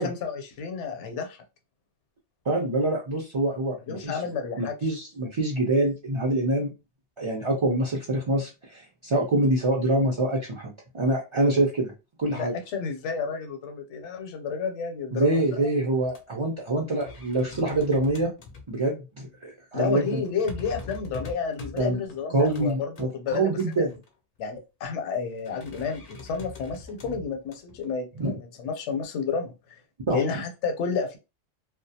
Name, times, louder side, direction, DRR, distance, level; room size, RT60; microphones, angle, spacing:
voice 1, 0.0-1.4 3.9-4.7 12.3-15.4 19.7-23.6 24.4-29.5 30.1-31.2, left 5 dB, 85° left, 0.9 m, -31 dB
voice 2, 2.5-4.2 4.6-6.7 7.2-11.9 12.2-12.6 15.1-18.3 18.7-20.2 21.8-22.0 22.3-23.9 28.2-28.3 30.1-30.2, right 1 dB, 45° right, 0.4 m, -25 dB
sound 1, 15.9-16.2 16.5-16.6 16.9-18.7 19.2-19.3 20.0-23.1 23.6-24.1 25.4-27.8, left 3 dB, 55° left, 0.4 m, -43 dB
2.3 x 2.1 x 2.7 m
omnidirectional pair, 1.2 m